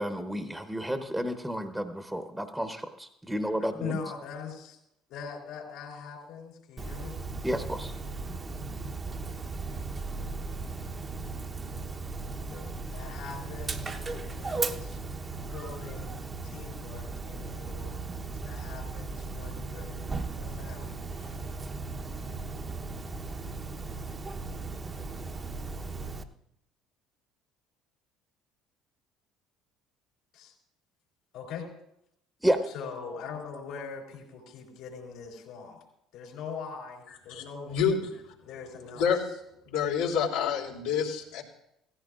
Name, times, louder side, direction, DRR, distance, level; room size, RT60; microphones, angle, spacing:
voice 1, 0.0-4.0 7.4-7.9 32.4-32.6, equal, 5° right, 7 dB, 1.0 m, -31 dB
voice 2, 3.8-4.8 5.1-7.2 12.5-15.0 15.5-21.3 30.3-30.5 31.3-31.7 32.7-35.8 36.1-37.8 38.4-39.1, left 6 dB, 70° left, -1 dB, 3.7 m, -42 dB
Dog, 6.8-26.2, right 3 dB, 30° right, 0.9 m, -37 dB
voice 3, 37.3-38.0 38.9-39.2 39.6-41.4, left 7 dB, 85° left, -5 dB, 3.0 m, -28 dB
16.5 x 14.5 x 2.5 m, 0.78 s
hypercardioid pair, 65°, 0 cm